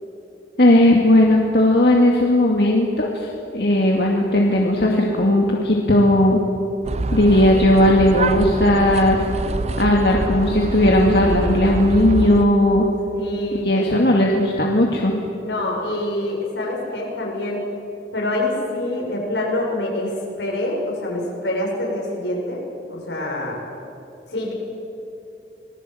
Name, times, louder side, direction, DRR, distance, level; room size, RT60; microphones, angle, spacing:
voice 1, 0.6-3.3 3.5-6.4 7.1-9.2 9.8-12.9 13.6-15.1, left 1 dB, 65° left, -1 dB, 2.3 m, -16 dB
sound 1, 6.8-12.4, right 2 dB, 40° right, 0.7 m, -25 dB
voice 2, 13.1-13.8 15.4-17.7 18.1-22.6 22.9-23.6 24.3-24.5, left 1 dB, 90° left, -1 dB, 7.0 m, -26 dB
26.0 x 20.0 x 7.9 m, 2.8 s
head